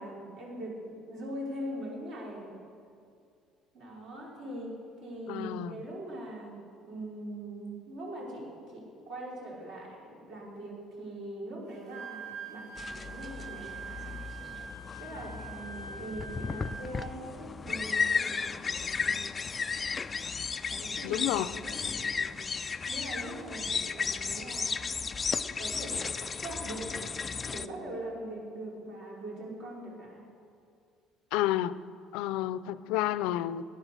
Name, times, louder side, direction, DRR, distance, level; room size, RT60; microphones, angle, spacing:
voice 1, 0.0-2.5 3.7-6.5 6.8-14.2 15.0-19.2 20.7-22.4 22.9-25.1 25.4-26.0 26.4-27.0 27.5-30.2, right 1 dB, 50° right, -3 dB, 4.7 m, -42 dB
voice 2, 5.3-5.8 21.0-21.5 31.3-31.8 32.1-33.6, left 14 dB, 90° left, 15 dB, 0.5 m, -30 dB
Wind instrument woodwind instrument, 11.7-17.0, right 4 dB, 85° right, 5.0 m, -44 dB
sound 1, 12.8-27.7, left 5 dB, 20° left, 0.3 m, -34 dB
18.5 x 10.5 x 6.7 m, 2.4 s
cardioid pair, 170°, 0 cm